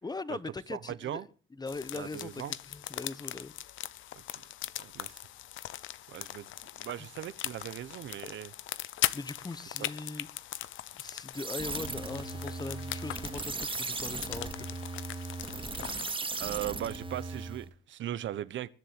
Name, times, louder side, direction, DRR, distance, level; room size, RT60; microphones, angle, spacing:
voice 1, 0.0-1.3 1.6-3.5 5.7-5.9 9.1-10.3 11.0-14.7, left 3 dB, 20° left, 1.1 m, -40 dB
voice 2, 0.7-1.2 1.9-2.5 4.3-4.4 4.8-5.2 6.1-6.5 6.8-8.5 9.8-9.9 16.4-18.7, right 12 dB, 70° right, 1.1 m, -38 dB
sound 1, 1.7-16.1, left 13 dB, 80° left, 0.9 m, -40 dB
sound 2, 11.3-17.7, right 3 dB, 25° right, 2.7 m, -37 dB
21.0 x 7.5 x 7.7 m
cardioid pair, 90°, 20 cm